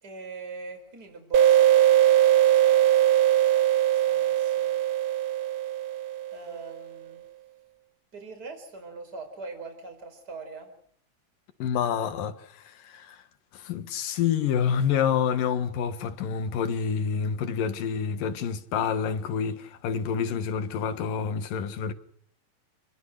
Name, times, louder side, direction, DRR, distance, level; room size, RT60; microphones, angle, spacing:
voice 1, 0.0-3.0 3.9-4.8 6.3-7.2 8.1-10.7, right 4 dB, 30° right, 5.2 m, -42 dB
sound 1, 1.3-6.7, right 12 dB, 70° right, 1.2 m, -21 dB
voice 2, 11.6-13.2 13.5-21.9, left 7 dB, 85° left, 3.2 m, -28 dB
28.5 x 20.5 x 6.5 m
omnidirectional pair, 3.8 m